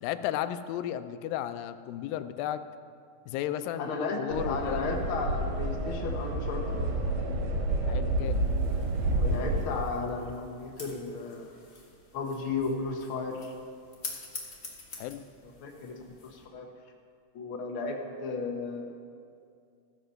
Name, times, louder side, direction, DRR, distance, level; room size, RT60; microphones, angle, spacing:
voice 1, 0.0-2.6 3.3-5.0 7.9-8.4 15.0-15.2, left 11 dB, 90° left, 11 dB, 2.3 m, -34 dB
voice 2, 3.8-4.2 4.5-6.8 9.2-11.5 12.1-13.5 15.6-15.9 16.2-16.7 17.3-18.9, left 4 dB, 65° left, 2 dB, 1.3 m, -34 dB
sound 1, 4.3-9.6, right 2 dB, 60° right, 1.9 m, -29 dB
sound 2, 8.2-16.4, left 3 dB, 40° left, 0.9 m, -47 dB
15.0 x 7.9 x 5.7 m, 2.3 s
omnidirectional pair, 4.0 m